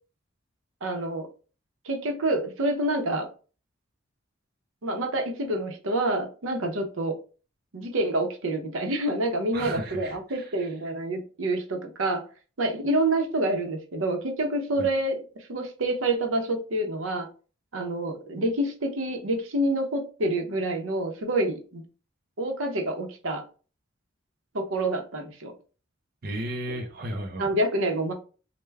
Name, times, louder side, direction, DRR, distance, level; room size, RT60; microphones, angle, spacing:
voice 1, 0.8-1.3 1.8-3.3 4.8-7.2 7.7-12.2 12.6-15.2 15.5-17.3 17.7-21.8 22.4-23.4 24.5-25.5 26.7-26.8 27.4-28.1, right 1 dB, 80° right, 0.7 m, -27 dB
voice 2, 9.5-10.7 14.8-14.9 26.2-27.5, right 1 dB, 45° right, 0.5 m, -34 dB
3.3 x 2.2 x 3.2 m
head